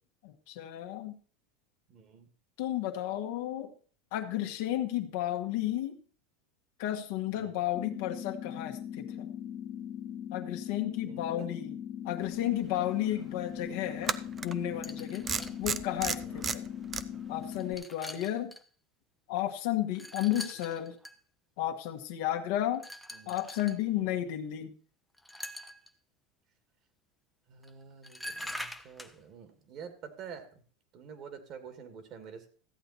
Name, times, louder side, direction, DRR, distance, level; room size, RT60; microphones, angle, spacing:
voice 1, 0.2-1.2 2.6-3.7 4.1-6.0 6.8-9.3 10.3-11.8 12.0-14.2 14.4-15.3 15.6-16.6 17.3-18.5 19.3-21.0 21.6-22.9 23.3-24.7, left 13 dB, 70° left, 5 dB, 1.5 m, -33 dB
voice 2, 1.9-2.3 7.3-7.6 11.1-11.5 14.7-15.6 16.2-16.5 23.1-23.4 23.9-24.2 27.5-30.6 30.9-32.5, right 7 dB, 50° right, 8 dB, 2.2 m, -48 dB
sound 1, 7.7-17.7, left 9 dB, 35° left, 1.3 m, -40 dB
sound 2, 12.6-12.7 14.0-14.5 15.3-17.0, right 6 dB, 25° right, 0.5 m, -32 dB
sound 3, 14.8-15.6 16.5-16.6 17.4-18.6 19.9-21.1 22.8-23.8 25.2-25.9 27.6-27.7 28.0-29.2, equal, 5° left, 0.8 m, -43 dB
14.0 x 8.0 x 4.2 m, 0.42 s
hypercardioid pair, 105°, 0 cm